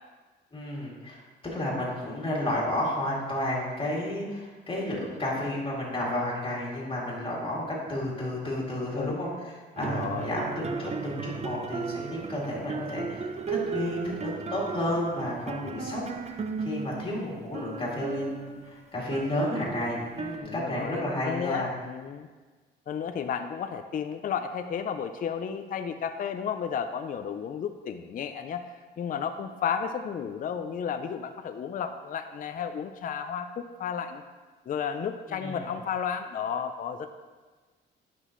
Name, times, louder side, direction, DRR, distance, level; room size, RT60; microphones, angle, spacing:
voice 1, 0.5-9.3 9.8-21.7 35.3-35.7, left 1 dB, 25° left, -4 dB, 2.6 m, -32 dB
voice 2, 9.8-10.4 20.4-22.3 22.9-34.2 34.7-37.1, left 7 dB, 45° left, 8 dB, 0.5 m, -33 dB
sound 1, 9.8-20.4, right 5 dB, 35° right, 0.7 m, -35 dB
9.8 x 5.9 x 3.1 m, 1.3 s
cardioid pair, 90°, 20 cm